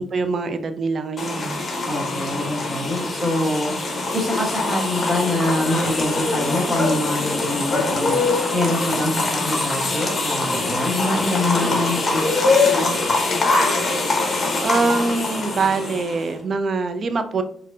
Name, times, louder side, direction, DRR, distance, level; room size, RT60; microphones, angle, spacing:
voice 1, 0.0-1.6 14.3-17.4, right 4 dB, 50° right, 10 dB, 0.4 m, -24 dB
sound 1, 1.2-16.3, left 3 dB, 35° left, 0.8 m, -23 dB
voice 2, 1.9-3.7 4.1-13.1, left 1 dB, 5° right, -4 dB, 1.3 m, -25 dB
4.7 x 2.5 x 2.3 m, 0.63 s
cardioid pair, 80°, 0 cm